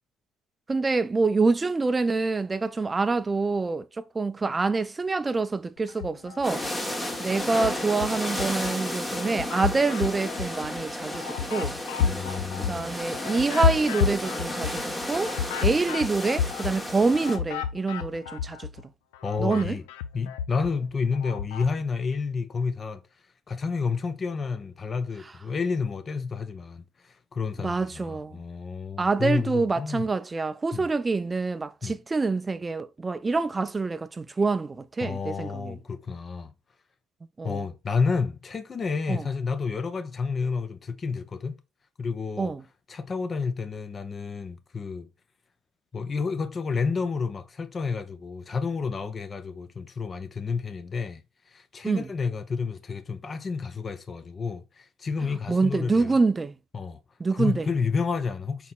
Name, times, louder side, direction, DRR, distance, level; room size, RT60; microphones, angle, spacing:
voice 1, 0.7-6.6 7.2-11.8 12.7-14.8 15.1-15.3 15.6-18.7 19.4-19.8 27.6-28.4 29.0-35.8 37.4-37.6 39.1-39.3 42.4-42.6 51.8-52.1 55.5-56.5 57.2-57.7, right 3 dB, 25° right, 0.3 m, -26 dB
sound 1, 5.9-6.7 7.1-8.7 9.1-18.8 19.1-21.7, left 7 dB, 85° left, 0.3 m, -31 dB
sound 2, 6.4-17.4, left 1 dB, 20° left, 1.1 m, -33 dB
voice 2, 12.0-13.0 19.2-19.8 20.1-23.0 23.5-30.0 30.7-30.9 31.8-32.0 35.0-36.5 37.4-41.6 42.0-42.5 42.9-45.1 45.9-51.2 51.5-56.1 56.7-57.0 57.3-58.7, left 5 dB, 35° left, 0.5 m, -30 dB
4.1 x 4.1 x 2.3 m
hypercardioid pair, 65°, 0 cm